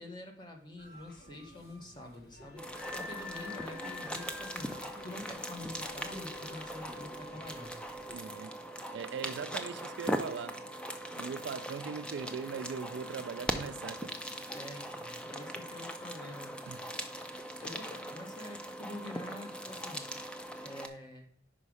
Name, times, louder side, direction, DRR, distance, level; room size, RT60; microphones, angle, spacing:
voice 1, 0.0-7.8 14.5-16.8 17.3-20.1 20.6-21.3, left 1 dB, 25° left, 1.1 m, -47 dB
sound 1, 0.8-8.2, left 3 dB, 60° left, 1.2 m, -48 dB
sound 2, 2.6-20.9, equal, 5° left, 0.4 m, -40 dB
voice 2, 8.1-8.5 8.9-10.7 11.2-14.2 16.7-16.8, right 6 dB, 80° right, 0.3 m, -40 dB
5.4 x 5.2 x 4.7 m
head